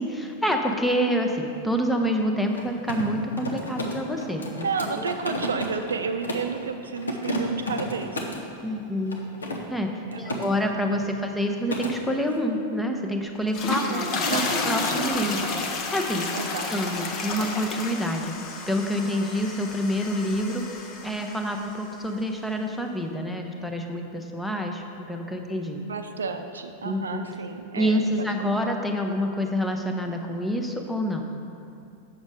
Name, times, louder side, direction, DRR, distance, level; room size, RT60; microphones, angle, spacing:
voice 1, 0.0-4.7 5.0-5.1 8.6-9.2 9.7-9.9 10.2-16.3 16.7-25.8 26.8-27.3 27.8-31.3, equal, 5° left, 3 dB, 0.7 m, -27 dB
Mechanisms, 2.4-6.6 7.0-8.5 9.1-10.5 10.8-11.1 11.4-11.9, equal, 75° left, 0.8 m, -32 dB
voice 2, 4.6-8.2 10.1-10.6 11.1-11.3 13.7-14.9 16.3-16.9 25.8-28.6, right 5 dB, 70° right, 7 dB, 0.5 m, -32 dB
sound 1, 13.4-21.7, left 3 dB, 35° left, 0.8 m, -31 dB
7.5 x 6.3 x 4.8 m, 2.6 s
figure-of-eight pair, 90°, 0 cm